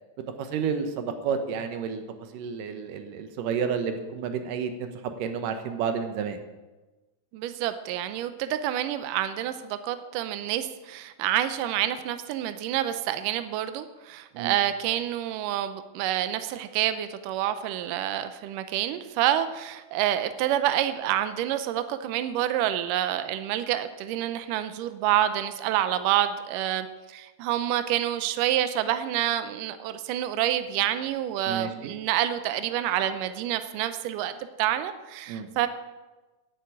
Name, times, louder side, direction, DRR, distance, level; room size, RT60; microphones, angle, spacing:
voice 1, 0.4-2.0 2.3-4.9 5.2-6.4 14.3-14.5 31.5-31.9 35.3-35.5, right 6 dB, 70° right, 7 dB, 2.3 m, -30 dB
voice 2, 7.3-34.3 34.6-35.7, right 12 dB, 90° right, 11 dB, 1.8 m, -28 dB
10.5 x 8.4 x 8.4 m, 1.2 s
omnidirectional pair, 4.6 m